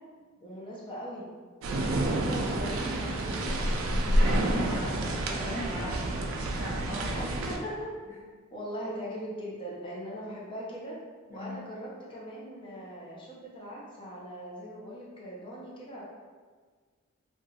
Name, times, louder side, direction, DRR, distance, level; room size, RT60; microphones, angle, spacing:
voice 1, 0.4-1.3 1.7-3.7 7.2-7.9 8.5-11.0 11.3-16.0, equal, 25° left, -5 dB, 0.6 m, -40 dB
sound 1, 1.6-7.6, right 1 dB, 75° right, 0.3 m, -29 dB
voice 2, 4.0-7.3 11.3-11.5, left 1 dB, 15° right, -7 dB, 0.7 m, -38 dB
2.8 x 2.3 x 2.7 m, 1.5 s
head